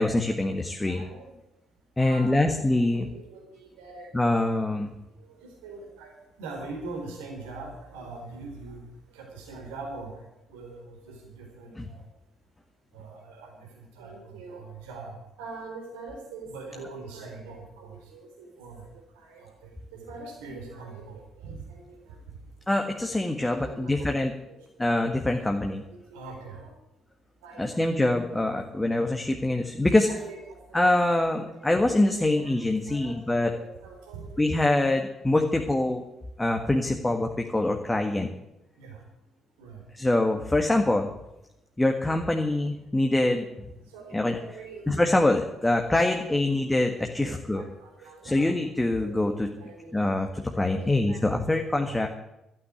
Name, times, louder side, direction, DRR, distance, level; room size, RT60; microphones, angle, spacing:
voice 1, 0.0-1.0 2.0-3.1 4.1-5.0 11.8-11.9 22.7-24.3 24.8-25.8 27.6-30.1 30.7-33.5 34.4-36.0 36.4-38.3 39.9-41.1 41.8-43.7 44.1-44.4 44.9-47.6 48.2-49.5 49.9-52.1, left 2 dB, 15° left, 3 dB, 1.6 m, -24 dB
voice 2, 0.9-1.3 2.0-4.4 5.2-6.1 6.4-8.8 9.1-10.1 10.5-12.0 12.9-22.2 23.5-24.2 24.5-24.9 25.8-26.7 27.4-27.9 28.7-28.8 30.1-30.4 30.7-31.3 32.2-34.6 38.8-39.0 39.6-39.8 43.9-45.3 45.8-48.5 49.0-50.2 50.6-52.1, right 3 dB, 70° right, 0 dB, 4.0 m, -43 dB
13.0 x 8.8 x 9.6 m, 0.89 s
figure-of-eight pair, 45°, 0 cm